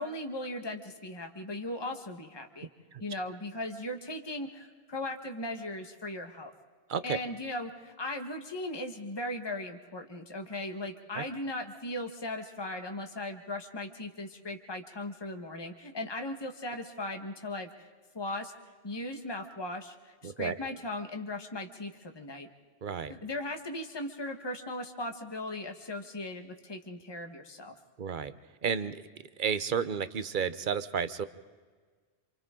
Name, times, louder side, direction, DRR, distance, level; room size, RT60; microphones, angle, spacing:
voice 1, 0.0-2.7 3.0-6.5 7.0-17.9 18.1-18.5 18.8-22.5 23.1-27.7, left 1 dB, 25° left, 4 dB, 1.4 m, -38 dB
voice 2, 20.2-20.5 22.8-23.1 28.0-28.3 28.6-29.1 29.4-31.3, right 7 dB, 50° right, 13 dB, 1.0 m, -32 dB
28.5 x 27.0 x 3.8 m, 1.5 s
omnidirectional pair, 1.1 m